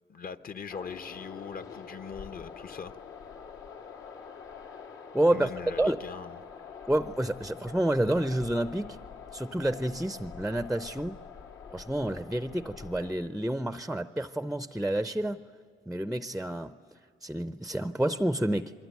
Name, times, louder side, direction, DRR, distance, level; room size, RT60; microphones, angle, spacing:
voice 1, 0.1-2.9 5.3-6.4, left 6 dB, 45° left, 1.1 m, -41 dB
sound 1, 0.7-13.1, left 6 dB, 80° left, 3.1 m, -46 dB
voice 2, 5.1-5.5 5.8-6.0 6.9-9.0 9.3-11.2 11.7-15.4 15.9-16.8 17.2-18.7, right 1 dB, ahead, 0.6 m, -29 dB
28.0 x 22.5 x 9.3 m
cardioid pair, 90°, 20 cm